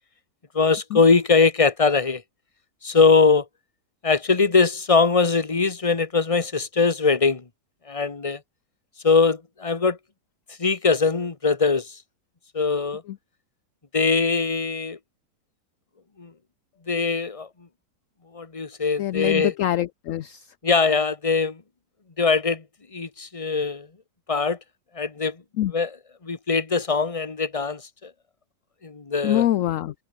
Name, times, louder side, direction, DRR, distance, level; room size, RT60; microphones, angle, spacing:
voice 1, 0.5-2.2 2.8-3.4 4.0-7.4 7.9-8.4 9.0-10.0 10.6-12.0 12.5-13.0 13.9-15.0 16.2-16.3 16.9-17.5 18.3-19.5 20.6-21.6 22.2-22.6 22.9-23.9 24.3-24.6 24.9-25.4 25.7-26.0 26.2-28.1 28.8-29.4, left 4 dB, 20° left, 1.4 m, -21 dB
voice 2, 19.0-20.4 25.6-25.7 29.2-29.9, left 13 dB, 65° left, 0.8 m, -24 dB
omnidirectional pair, 1.8 m